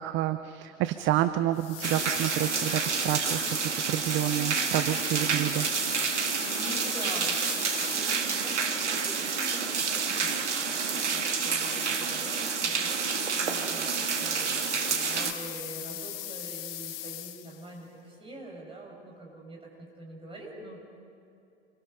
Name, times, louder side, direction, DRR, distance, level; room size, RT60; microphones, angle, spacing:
voice 1, 0.0-5.7, right 13 dB, 35° right, 11 dB, 0.7 m, -29 dB
sound 1, 1.5-8.6 10.5-17.7, left 13 dB, 55° left, 1.2 m, -41 dB
sound 2, 1.8-15.3, right 5 dB, 75° right, 1.7 m, -29 dB
voice 2, 6.4-20.8, right 1 dB, 15° right, -1 dB, 6.6 m, -45 dB
28.0 x 23.0 x 5.6 m, 2.6 s
figure-of-eight pair, 80°, 36 cm